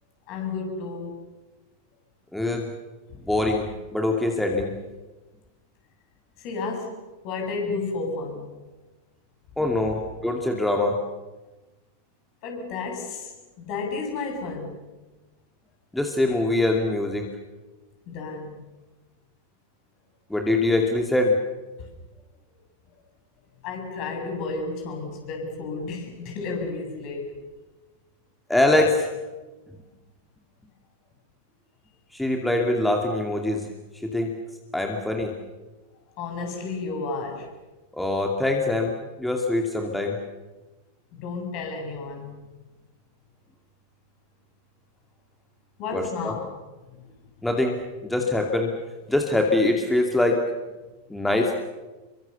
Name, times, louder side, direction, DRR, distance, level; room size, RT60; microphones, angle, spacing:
voice 1, 0.3-1.2 6.4-7.0 7.2-8.5 12.4-13.3 13.6-14.8 18.1-18.7 21.8-21.9 23.6-27.4 36.2-37.5 41.1-42.3 45.8-46.5 46.9-47.0, left 4 dB, 40° left, 3 dB, 7.4 m, -32 dB
voice 2, 2.3-2.7 3.2-4.7 9.6-11.0 15.9-17.3 20.3-21.4 28.5-29.1 32.1-33.7 33.9-34.3 34.7-35.4 37.9-40.2 45.9-46.3 47.4-48.7 49.1-50.4 51.1-51.5, left 2 dB, 5° left, 2 dB, 2.5 m, -23 dB
28.0 x 24.0 x 7.0 m, 1.2 s
figure-of-eight pair, 90°, 0 cm